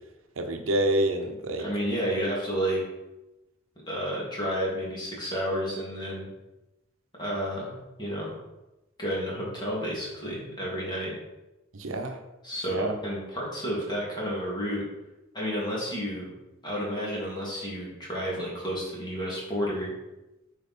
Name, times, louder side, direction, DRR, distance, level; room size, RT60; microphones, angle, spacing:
voice 1, 0.4-1.7 11.7-12.2 12.7-12.9, right 1 dB, 85° right, 5 dB, 0.9 m, -27 dB
voice 2, 1.6-2.8 3.9-6.3 7.2-8.3 9.0-11.1 12.4-14.8 15.3-16.3 16.6-19.9, equal, 20° left, -5 dB, 2.6 m, -31 dB
8.4 x 4.7 x 4.4 m, 0.98 s
head